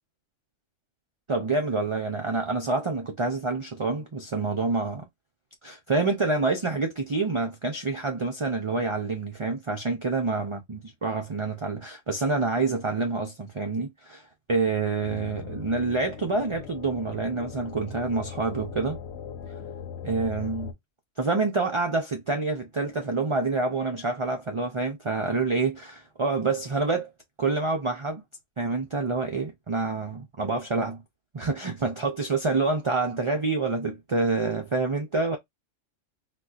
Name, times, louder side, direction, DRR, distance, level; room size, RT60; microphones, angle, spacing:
voice 1, 1.3-5.0 5.6-14.2 14.5-19.0 20.0-20.7 21.2-27.1 27.4-28.2 28.6-31.0 31.3-35.4, right 3 dB, 50° right, 0.3 m, -27 dB
sound 1, 15.0-20.7, left 7 dB, 65° left, 0.8 m, -39 dB
4.1 x 2.2 x 2.3 m
omnidirectional pair, 1.3 m